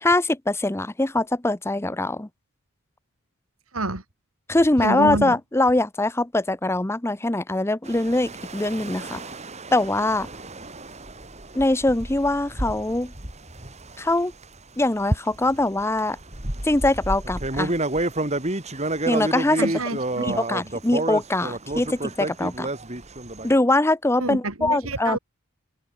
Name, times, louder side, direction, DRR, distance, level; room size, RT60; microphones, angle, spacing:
voice 1, 0.0-2.3 4.5-9.2 9.7-10.3 11.5-13.1 14.0-14.3 14.8-16.2 16.6-17.7 19.1-19.6 20.2-22.7 23.4-25.2, left 2 dB, 10° left, 0.7 m, -22 dB
voice 2, 4.8-5.3 19.6-20.4 24.2-25.2, right 2 dB, 85° right, 3.5 m, -27 dB
sound 1, 7.8-14.6 15.1-23.6, right 1 dB, 30° right, 4.1 m, -30 dB
head